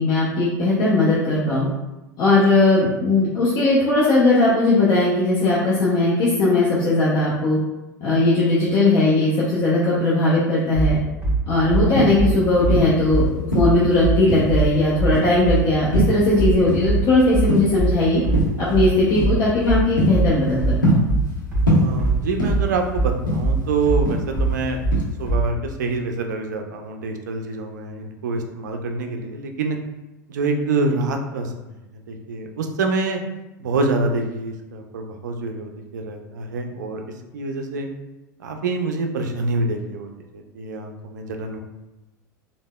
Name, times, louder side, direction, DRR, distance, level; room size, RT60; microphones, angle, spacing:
voice 1, 0.0-1.7 2.2-7.6 8.0-11.0 11.5-18.2 18.6-21.0, left 2 dB, 40° left, -7 dB, 0.6 m, -18 dB
sound 1, 10.7-25.5, right 3 dB, 20° right, 1.2 m, -21 dB
sound 2, 11.8-13.0 13.5-14.7 15.1-15.5 15.9-17.1 17.3-17.9 18.3-18.6 19.1-19.4 19.7-21.4 21.7-22.8 23.1-24.6 24.9-25.2, equal, 85° left, 0.7 m, -22 dB
voice 2, 21.7-24.8 25.2-29.8 30.3-31.7 32.1-33.2 33.6-37.0 37.3-37.9 38.4-41.6, right 3 dB, 65° right, 4 dB, 0.4 m, -26 dB
3.3 x 2.0 x 2.2 m, 1.0 s
figure-of-eight pair, 80°, 10 cm